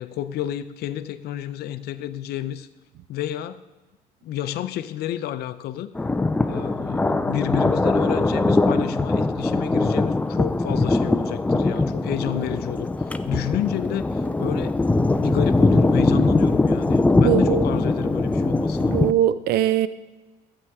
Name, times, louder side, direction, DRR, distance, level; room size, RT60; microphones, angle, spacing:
voice 1, 0.0-2.7 3.1-3.6 4.2-5.9 6.5-14.8 15.2-19.0, left 12 dB, 70° left, 12 dB, 0.6 m, -30 dB
Thunder, 5.9-19.1, left 2 dB, 10° left, 0.4 m, -21 dB
voice 2, 17.2-17.6 18.9-19.9, right 12 dB, 70° right, 15 dB, 0.5 m, -21 dB
12.5 x 8.7 x 3.6 m, 1.1 s
cardioid pair, 110°, 17 cm